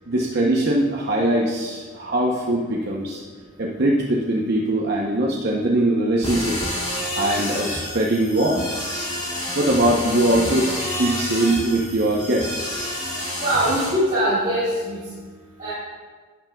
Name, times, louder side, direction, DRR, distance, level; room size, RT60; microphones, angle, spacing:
voice 1, 0.1-3.2 3.6-6.6 7.2-8.6 9.5-12.7, right 1 dB, 50° right, -2 dB, 0.7 m, -21 dB
sound 1, 6.2-13.9, left 1 dB, 25° left, 2.0 m, -29 dB
voice 2, 13.4-15.0 15.6-15.7, right 1 dB, 30° right, -11 dB, 2.0 m, -21 dB
11.5 x 9.0 x 2.3 m, 1.5 s
head